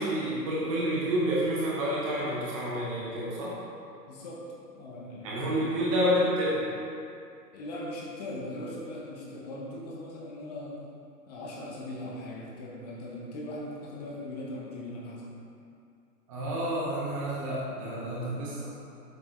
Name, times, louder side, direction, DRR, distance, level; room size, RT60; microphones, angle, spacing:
voice 1, 0.0-3.6 5.2-6.6 16.3-18.7, equal, 20° right, -5 dB, 0.8 m, -29 dB
voice 2, 4.1-4.4 4.7-5.8 7.5-10.7 11.3-15.3 18.0-18.4, left 1 dB, 25° left, -4 dB, 0.8 m, -40 dB
7.6 x 5.7 x 3.2 m, 2.5 s
figure-of-eight pair, 130°, 49 cm